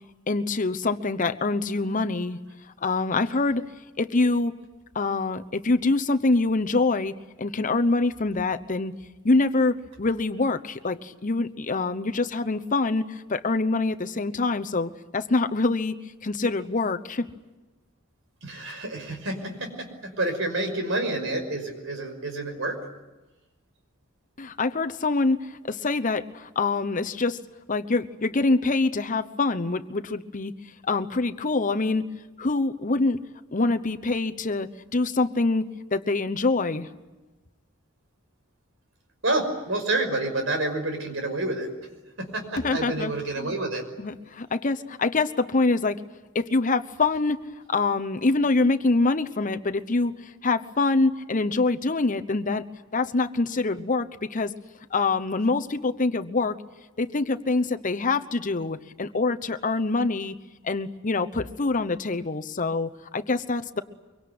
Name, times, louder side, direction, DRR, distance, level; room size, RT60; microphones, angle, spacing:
voice 1, 0.3-2.4 2.8-3.7 4.0-4.6 4.9-7.1 7.4-8.9 9.2-16.0 16.2-17.3 24.4-27.4 27.7-30.5 30.9-32.0 32.4-33.2 33.5-35.7 35.9-36.9 42.6-43.6 44.0-46.0 46.3-47.4 47.7-52.7 52.9-54.5 54.9-56.6 57.0-60.3 60.6-63.8, left 3 dB, 40° left, 9 dB, 0.9 m, -25 dB
voice 2, 18.4-22.8 39.2-41.7 42.2-43.8, right 2 dB, 70° right, 5 dB, 5.6 m, -28 dB
24.5 x 24.0 x 9.5 m, 1.1 s
head